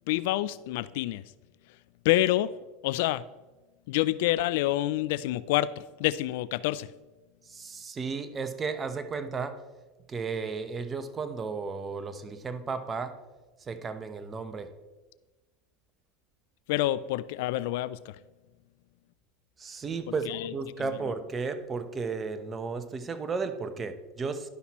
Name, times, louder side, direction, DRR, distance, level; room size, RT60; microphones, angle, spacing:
voice 1, 0.1-1.2 2.0-2.5 2.8-3.3 3.9-6.9 16.7-18.2 20.3-20.5 20.8-21.0, left 15 dB, 70° left, 0.3 m, -27 dB
voice 2, 7.5-9.6 10.1-13.1 13.6-14.7 19.6-24.5, right 4 dB, 25° right, 0.9 m, -34 dB
11.5 x 5.8 x 4.2 m
hypercardioid pair, 100°, 0 cm